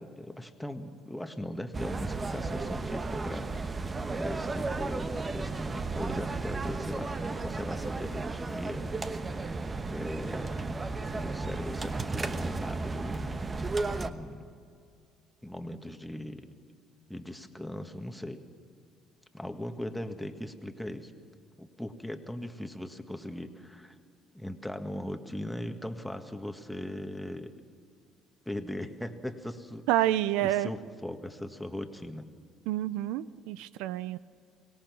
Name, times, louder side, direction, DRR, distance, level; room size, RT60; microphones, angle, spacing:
voice 1, 0.0-8.9 9.2-9.4 9.8-10.7 11.1-14.5 15.4-16.5 17.1-18.4 19.3-21.1 21.6-24.0 24.3-27.5 28.5-30.1 30.4-32.3, left 1 dB, 5° left, 7 dB, 1.8 m, -39 dB
sound 1, 1.7-14.1, right 3 dB, 30° right, 1.1 m, -34 dB
voice 2, 29.9-30.7 32.7-34.2, right 14 dB, 80° right, 17 dB, 0.4 m, -28 dB
24.0 x 18.0 x 6.1 m, 2.3 s
hypercardioid pair, 65°, 0 cm